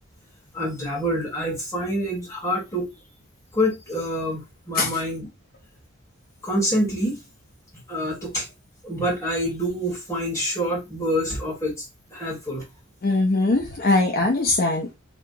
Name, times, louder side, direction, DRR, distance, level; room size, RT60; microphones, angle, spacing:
voice 1, 0.5-2.9 3.5-5.3 6.4-7.2 7.9-8.5 8.8-11.9 12.1-12.6, equal, 15° left, 1.3 m, -26 dB
voice 2, 13.0-15.0, left 2 dB, 45° left, 0.5 m, -21 dB
2.8 x 2.3 x 3.7 m
head